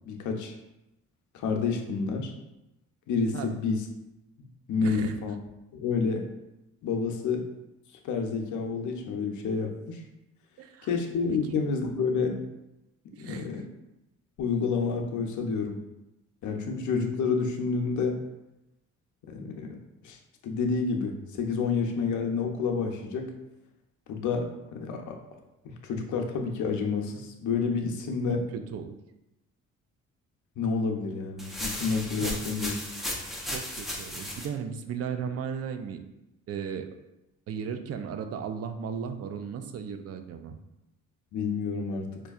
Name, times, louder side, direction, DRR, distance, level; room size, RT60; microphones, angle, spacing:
voice 1, 0.1-0.5 1.3-2.3 3.1-3.8 4.4-5.3 5.7-6.3 6.8-7.4 8.0-10.0 10.8-12.4 13.2-13.7 14.4-15.8 16.4-18.2 19.3-19.8 20.0-20.2 20.4-23.3 24.1-25.2 25.8-28.4 30.6-32.7 41.3-42.2, left 5 dB, 75° left, 3 dB, 0.6 m, -29 dB
voice 2, 4.8-5.1 10.6-10.9 11.3-11.6 13.1-13.6 28.3-29.0 32.2-32.4 33.4-36.0 36.5-37.0 37.5-40.6, right 7 dB, 55° right, 8 dB, 0.4 m, -36 dB
sound 1, 31.4-34.5, left 1 dB, ahead, 0.6 m, -35 dB
4.5 x 2.6 x 2.4 m, 0.93 s
cardioid pair, 90°, 30 cm